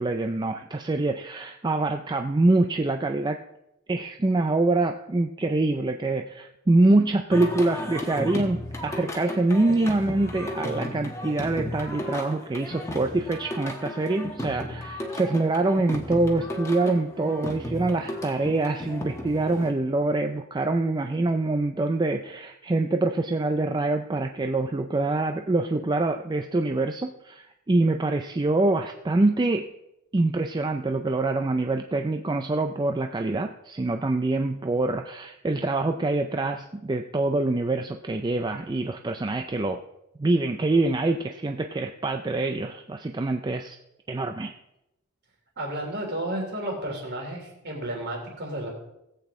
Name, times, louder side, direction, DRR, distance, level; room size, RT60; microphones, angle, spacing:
voice 1, 0.0-3.4 3.9-29.7 30.1-39.8 40.2-43.8 44.1-44.5, right 2 dB, 20° right, 6 dB, 0.4 m, -25 dB
Singing, 7.3-19.7, left 1 dB, 15° left, 1.2 m, -35 dB
voice 2, 45.6-48.7, right 1 dB, 50° right, 0 dB, 3.1 m, -32 dB
17.0 x 8.1 x 3.7 m, 0.88 s
head